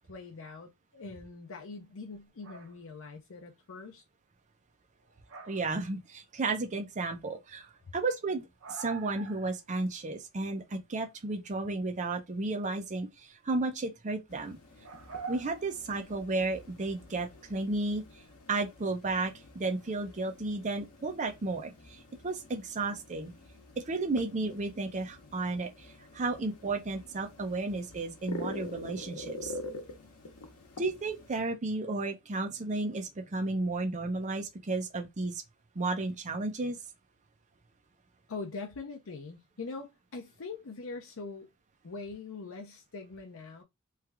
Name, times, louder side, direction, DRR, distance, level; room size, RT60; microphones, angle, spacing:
voice 1, 0.1-4.0 7.8-8.0 38.3-41.5 41.8-43.6, left 4 dB, 60° left, 0.6 m, -43 dB
sound 1, 2.1-2.8 5.0-5.9 6.1-6.6 7.1-7.2 7.5-7.6 7.7-7.8 8.1-9.6 9.9-10.0 10.4-10.8 13.1-13.2 14.8-16.3 17.0-17.4 19.1-19.2 19.6-19.8, right 5 dB, 65° right, 0.8 m, -46 dB
voice 2, 5.5-8.4 8.7-14.6 15.3-18.0 18.5-22.0 22.2-23.3 23.8-29.5 30.8-35.4 35.8-36.8, right 3 dB, 35° right, 0.6 m, -33 dB
sound 2, 14.3-31.4, left 2 dB, 85° left, 0.8 m, -47 dB
3.2 x 2.3 x 3.3 m
head